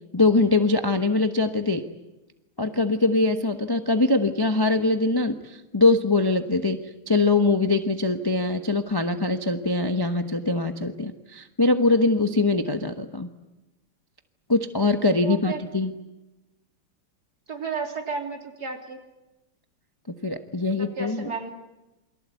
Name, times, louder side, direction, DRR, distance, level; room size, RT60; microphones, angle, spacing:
voice 1, 0.1-1.8 2.6-13.3 14.5-15.9 20.2-21.3, left 2 dB, 20° left, 7 dB, 0.7 m, -22 dB
voice 2, 15.2-15.6 17.5-19.0 20.7-21.5, right 4 dB, 45° right, 3 dB, 3.6 m, -33 dB
28.5 x 23.0 x 8.3 m, 1.0 s
omnidirectional pair, 2.3 m